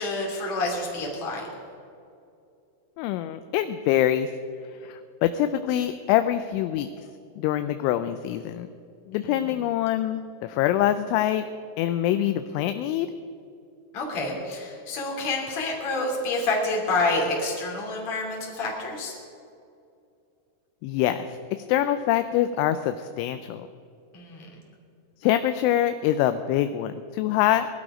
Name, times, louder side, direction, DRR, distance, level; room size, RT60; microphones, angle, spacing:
voice 1, 0.0-1.5 9.2-9.4 13.9-19.1 24.1-24.5, left 2 dB, 40° left, -1 dB, 3.5 m, -28 dB
voice 2, 3.0-4.3 4.8-6.9 7.4-8.7 9.1-11.5 11.8-13.1 20.8-23.7 25.2-27.7, left 12 dB, 85° left, 10 dB, 2.8 m, -25 dB
20.0 x 12.0 x 5.0 m, 2.5 s
omnidirectional pair, 5.8 m